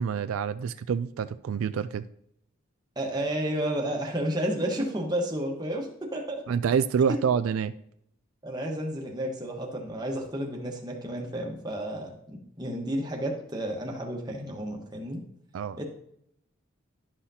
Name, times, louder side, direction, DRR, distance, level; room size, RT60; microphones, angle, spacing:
voice 1, 0.0-2.0 6.5-7.7 15.5-15.8, right 7 dB, 85° right, 0.3 m, -27 dB
voice 2, 3.0-6.5 7.1-7.2 8.4-15.2 15.8-15.9, right 1 dB, 20° right, 1.2 m, -31 dB
11.5 x 5.7 x 2.8 m
head